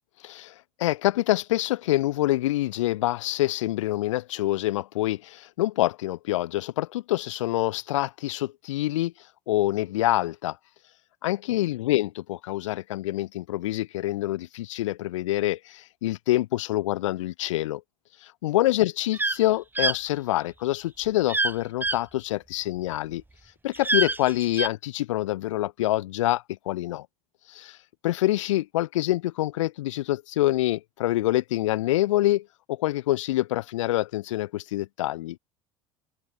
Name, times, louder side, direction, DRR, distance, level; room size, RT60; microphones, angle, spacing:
voice 1, 0.2-0.5 0.8-9.1 9.5-10.6 11.2-17.8 18.2-23.2 23.6-27.1 27.5-27.8 28.0-35.4, left 16 dB, 65° left, 3.5 m, -26 dB
sound 1, 19.1-19.4 19.8-20.0 21.3-21.5 21.8-22.0 23.7-24.7, right 2 dB, 10° right, 5.4 m, -25 dB
open air
figure-of-eight pair, 65°, 17 cm